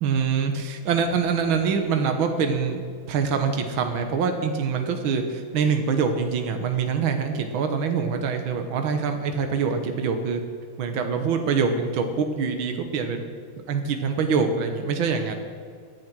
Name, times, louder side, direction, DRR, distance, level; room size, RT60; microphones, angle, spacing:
voice 1, 0.0-2.8 3.1-10.4 10.8-13.3 13.7-15.3, right 5 dB, 75° right, 5 dB, 1.9 m, -24 dB
18.0 x 11.0 x 6.2 m, 2.2 s
omnidirectional pair, 2.2 m